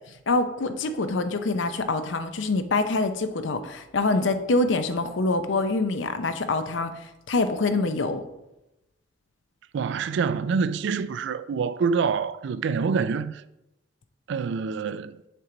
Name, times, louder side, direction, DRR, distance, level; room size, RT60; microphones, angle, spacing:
voice 1, 0.3-8.2, left 3 dB, 70° left, 0.6 m, -25 dB
voice 2, 9.7-13.4 14.3-15.2, right 5 dB, 65° right, 0.3 m, -26 dB
6.8 x 4.5 x 3.8 m
head